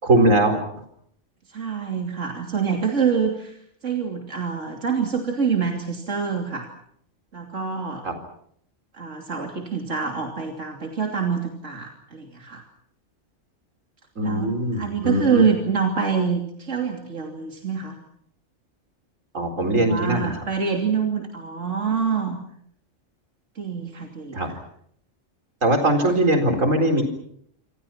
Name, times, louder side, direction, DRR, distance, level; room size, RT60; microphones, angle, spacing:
voice 1, 0.0-0.6 8.0-8.1 14.2-15.4 19.3-20.4 24.3-24.5 25.6-27.0, right 1 dB, 85° right, 6 dB, 4.6 m, -20 dB
voice 2, 1.5-3.6 3.8-6.7 7.3-8.0 9.0-12.6 14.2-18.0 19.7-22.4 23.5-24.6, right 6 dB, 70° right, 2 dB, 3.2 m, -26 dB
27.5 x 26.5 x 5.9 m, 0.69 s
omnidirectional pair, 1.3 m